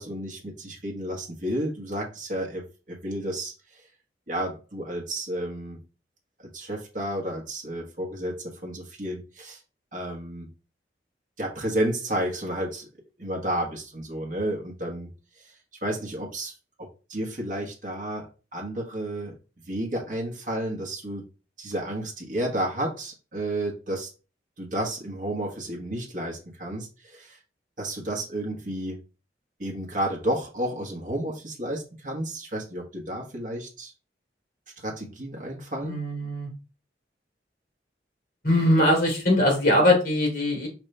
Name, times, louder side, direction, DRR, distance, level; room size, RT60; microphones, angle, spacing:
voice 1, 0.0-3.9 4.3-5.8 6.4-9.6 9.9-10.5 11.4-12.9 13.2-15.1 15.4-15.5 15.8-16.5 16.8-19.3 19.6-21.3 21.6-24.1 24.6-27.4 27.8-29.0 29.6-33.9 34.8-36.0, right 1 dB, 50° right, -1 dB, 1.1 m, -31 dB
voice 2, 35.8-36.5 38.4-40.7, left 1 dB, 50° left, 0 dB, 2.6 m, -21 dB
5.2 x 3.1 x 3.2 m, 0.32 s
head